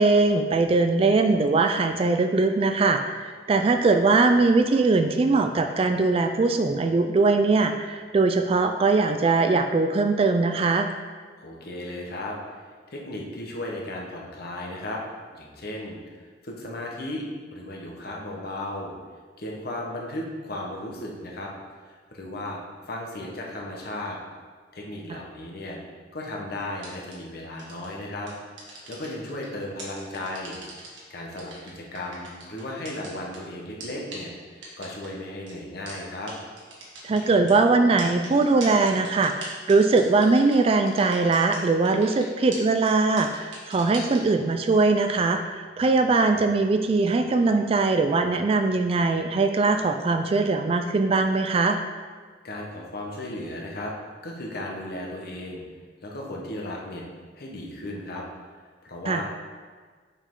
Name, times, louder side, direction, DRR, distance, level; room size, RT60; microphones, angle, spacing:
voice 1, 0.0-10.9 25.1-25.2 37.0-51.8 59.1-59.2, right 3 dB, 30° right, 6 dB, 0.3 m, -21 dB
voice 2, 11.4-12.4 12.9-15.0 15.3-17.2 17.5-18.9 19.4-21.5 21.8-22.6 22.9-24.2 24.7-25.8 26.1-28.3 28.9-30.6 31.1-36.3 52.4-53.9 54.2-55.6 56.0-57.0 57.4-58.2 58.8-59.2, left 1 dB, 55° left, -1 dB, 1.1 m, -35 dB
sound 1, 26.8-27.1 27.6-27.9 28.3-29.4 29.8-31.0 31.4-33.4 33.8-33.9 34.1-34.2 34.6-35.1 35.5-35.6 35.9-36.0 36.3-36.4 36.6-37.5 38.0-41.6 41.8-42.2 42.5-42.6 42.9-43.0 43.2-44.2, right 3 dB, 75° right, 1.8 m, -40 dB
6.6 x 5.3 x 3.7 m, 1.5 s
head